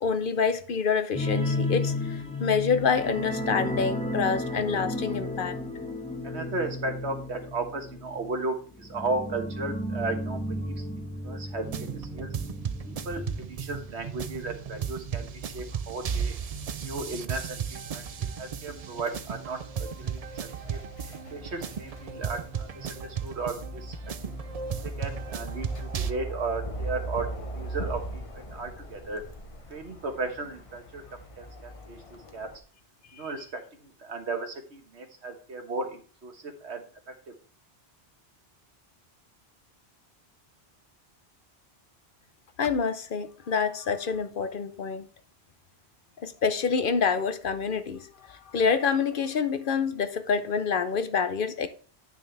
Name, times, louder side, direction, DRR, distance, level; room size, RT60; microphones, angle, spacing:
voice 1, 0.0-5.6 33.2-33.3 42.6-45.1 46.2-51.7, left 6 dB, 55° left, 0.8 m, -27 dB
sound 1, 1.1-14.4 14.7-14.9 15.3-15.4, left 1 dB, 5° left, 0.8 m, -33 dB
voice 2, 6.2-10.8 11.2-11.7 11.9-12.3 12.9-13.2 13.5-16.3 16.8-18.0 18.4-20.8 21.3-24.0 25.0-27.3 27.5-28.2 28.5-29.2 29.7-31.0 31.4-32.5 33.1-36.8 37.3-37.4, right 3 dB, 85° right, 1.6 m, -35 dB
sound 2, 11.6-26.1, right 7 dB, 50° right, 0.5 m, -35 dB
sound 3, 13.9-32.6, right 1 dB, 30° left, 1.0 m, -41 dB
9.3 x 6.2 x 3.3 m
omnidirectional pair, 1.1 m